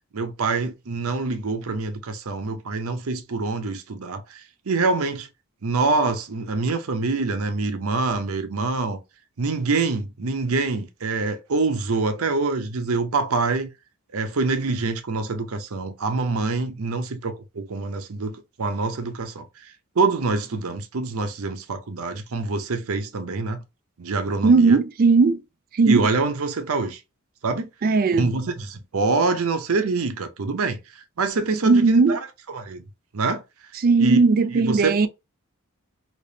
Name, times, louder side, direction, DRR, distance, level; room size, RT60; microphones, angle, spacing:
voice 1, 0.1-5.3 5.6-9.0 9.4-13.7 14.1-19.4 20.0-23.6 24.0-24.8 25.9-27.0 27.4-27.7 28.2-30.8 31.2-32.2 32.5-32.8 33.1-33.4 34.0-34.2 34.5-35.1, right 3 dB, 70° right, 0.7 m, -25 dB
voice 2, 24.4-25.4 25.7-26.1 27.8-28.3 31.6-32.2 33.7-35.1, right 4 dB, 40° right, 0.3 m, -17 dB
3.3 x 2.9 x 2.7 m
head